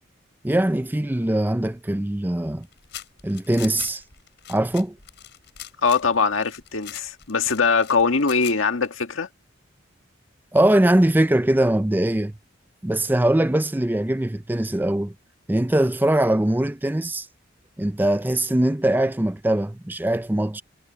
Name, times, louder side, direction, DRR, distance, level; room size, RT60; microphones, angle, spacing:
voice 1, 0.4-2.7 3.2-4.0 4.5-5.0 10.5-12.3 12.8-15.1 15.5-17.3 17.8-20.6, right 1 dB, 10° right, 0.4 m, -21 dB
sound 1, 2.6-8.9, left 11 dB, 60° left, 6.9 m, -41 dB
voice 2, 5.8-9.3, left 5 dB, 85° left, 1.7 m, -22 dB
head